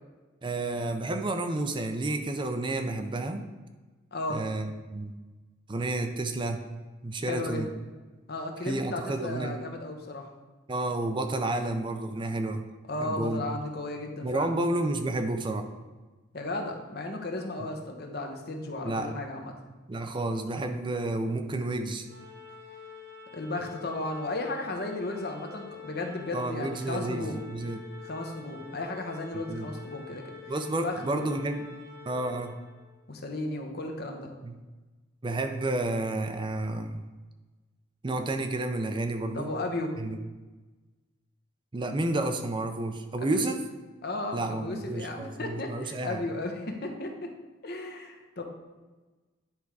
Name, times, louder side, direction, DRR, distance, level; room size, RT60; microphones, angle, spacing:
voice 1, 0.4-3.4 4.3-5.1 5.7-6.6 7.0-7.7 8.6-9.6 10.7-12.6 13.0-13.5 14.2-15.6 18.8-19.1 19.9-22.1 26.3-27.8 29.3-29.7 30.5-31.7 32.1-32.5 34.4-34.5 35.2-37.0 38.0-39.5 40.0-40.2 41.7-43.6 44.3-46.2, right 2 dB, 25° right, 6 dB, 0.5 m, -30 dB
voice 2, 4.1-4.4 7.2-7.6 8.3-10.3 12.9-14.5 16.3-19.5 23.3-27.4 28.0-30.2 30.8-31.4 33.1-34.3 39.3-39.9 43.2-43.4 44.0-47.3 47.6-48.4, left 2 dB, 55° left, 3 dB, 1.0 m, -34 dB
Organ, 22.0-32.9, left 6 dB, 55° right, 1.6 m, -47 dB
10.0 x 3.5 x 4.7 m, 1.2 s
head